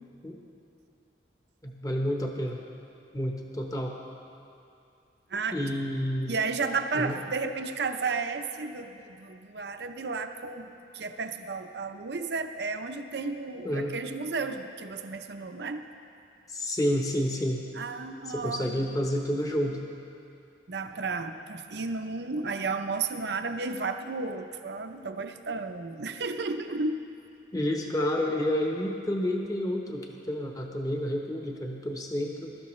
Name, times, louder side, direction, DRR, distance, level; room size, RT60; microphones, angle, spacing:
voice 1, 1.6-2.6 3.1-4.0 5.5-6.3 6.9-7.2 13.6-13.9 16.5-17.6 18.3-19.8 27.5-32.6, equal, 20° left, 1 dB, 1.0 m, -29 dB
voice 2, 5.3-5.7 6.3-15.9 17.7-19.1 20.7-27.1, right 4 dB, 65° right, 7 dB, 0.7 m, -33 dB
21.0 x 12.5 x 3.2 m, 2.6 s
head